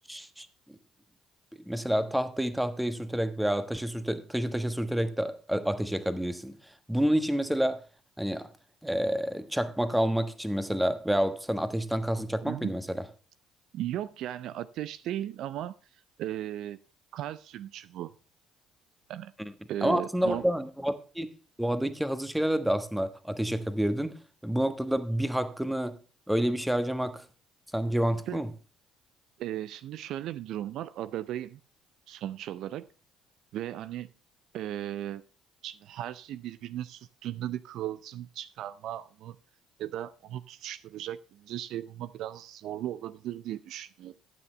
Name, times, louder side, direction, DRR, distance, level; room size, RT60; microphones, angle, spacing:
voice 1, 0.1-0.5 1.7-6.6 6.9-7.8 8.2-8.5 8.8-13.0 19.4-19.5 19.8-21.3 21.6-24.2 24.4-26.0 26.3-27.2 27.7-28.5, equal, 5° right, 1.3 m, -28 dB
voice 2, 12.4-12.7 13.7-15.7 16.2-16.8 17.1-18.1 19.1-19.3 19.7-20.4 28.3-28.4 29.4-31.6 32.1-32.9 33.5-34.1 34.5-35.2 35.6-39.4 39.8-44.1, right 12 dB, 65° right, 0.4 m, -36 dB
12.0 x 9.2 x 3.3 m
hypercardioid pair, 55°, 0 cm